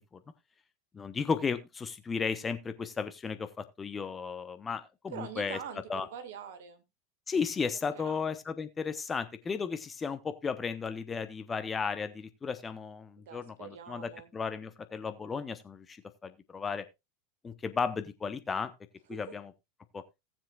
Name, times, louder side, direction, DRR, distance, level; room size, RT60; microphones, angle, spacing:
voice 1, 0.9-5.6 5.9-6.1 7.3-16.8 17.4-18.7 19.1-19.5 19.9-20.0, left 5 dB, 20° left, 10 dB, 0.9 m, -34 dB
voice 2, 5.1-6.8 7.9-8.2 13.2-14.3 19.1-19.2, right 7 dB, 60° right, 8 dB, 1.9 m, -44 dB
18.0 x 7.4 x 2.4 m, 0.22 s
figure-of-eight pair, 80°, 0 cm